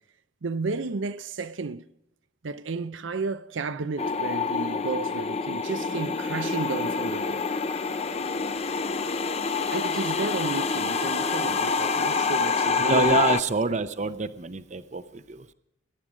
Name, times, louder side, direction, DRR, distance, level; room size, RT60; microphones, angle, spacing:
voice 1, 0.4-1.8 2.4-7.5 9.7-13.1 13.7-13.8, right 4 dB, 75° right, 0.6 m, -32 dB
sound 1, 4.0-13.4, left 4 dB, 35° left, 0.6 m, -27 dB
voice 2, 12.8-15.5, right 3 dB, 35° right, 0.7 m, -26 dB
22.0 x 11.0 x 5.1 m
head